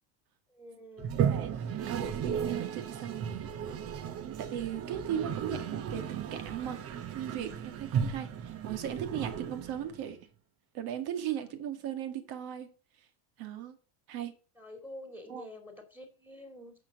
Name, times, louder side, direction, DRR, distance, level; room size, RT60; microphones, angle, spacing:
voice 1, 0.5-1.3 11.1-11.5 14.6-16.7, left 1 dB, 5° right, 2.5 m, -48 dB
Toilet flush, 1.0-10.1, right 8 dB, 35° right, 0.9 m, -35 dB
voice 2, 1.3-3.8 4.2-6.8 7.1-10.2 10.7-12.7 13.4-13.8 14.1-14.3 15.3-15.5, right 10 dB, 55° right, 2.2 m, -38 dB
9.4 x 6.9 x 7.3 m
cardioid pair, 160°, 43 cm